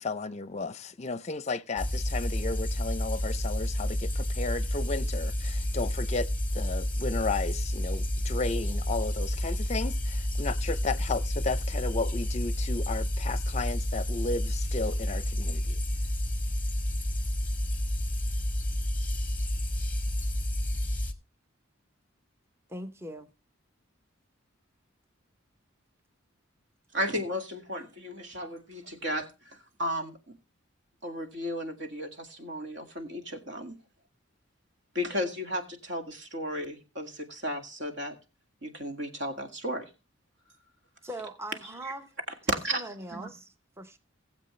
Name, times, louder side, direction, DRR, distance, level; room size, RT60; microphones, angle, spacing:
voice 1, 0.0-6.3 6.5-15.8, left 3 dB, 35° left, 0.6 m, -34 dB
sound 1, 1.8-21.1, left 1 dB, 10° left, 1.0 m, -30 dB
voice 2, 22.7-23.3 41.0-42.1 42.7-44.0, right 1 dB, 15° right, 0.8 m, -41 dB
voice 3, 26.9-30.3 31.0-33.7 34.9-38.1 38.6-39.9 42.5-42.8 43.1-43.3, equal, 60° right, 2.0 m, -34 dB
19.5 x 7.6 x 3.2 m
head